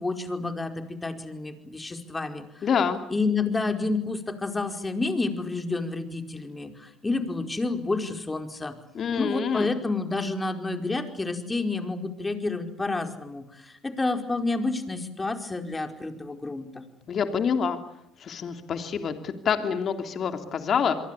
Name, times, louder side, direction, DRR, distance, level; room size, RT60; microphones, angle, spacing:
voice 1, 0.0-2.7 3.1-8.7 9.2-16.8, left 3 dB, 20° left, 6 dB, 4.9 m, -29 dB
voice 2, 2.6-3.0 8.9-9.7 17.1-17.8 18.2-20.9, left 6 dB, 45° left, 7 dB, 3.2 m, -26 dB
28.5 x 23.0 x 8.5 m, 0.77 s
hypercardioid pair, 70°, 0 cm